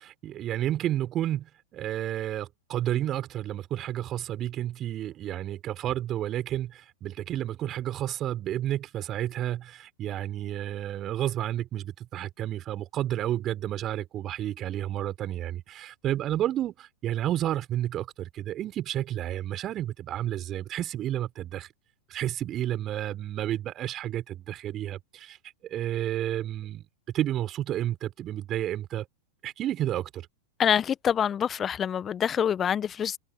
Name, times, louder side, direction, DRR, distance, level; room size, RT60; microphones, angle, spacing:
voice 1, 0.0-21.7 22.1-25.4 25.6-26.9 27.1-29.1 29.4-30.3, right 12 dB, 30° right, 5.6 m, -31 dB
voice 2, 30.6-33.2, left 8 dB, 25° left, 1.2 m, -26 dB
figure-of-eight pair, 95°, 0 cm